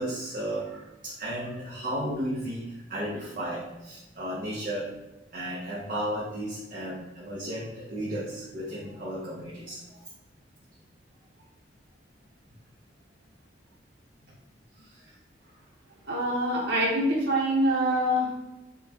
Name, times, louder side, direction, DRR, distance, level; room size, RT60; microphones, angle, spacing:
voice 1, 0.0-4.9 5.3-10.0 14.8-15.1, right 1 dB, 45° right, -7 dB, 0.7 m, -34 dB
voice 2, 16.1-18.3, equal, 80° right, -5 dB, 0.9 m, -25 dB
5.5 x 2.2 x 2.8 m, 1.0 s
head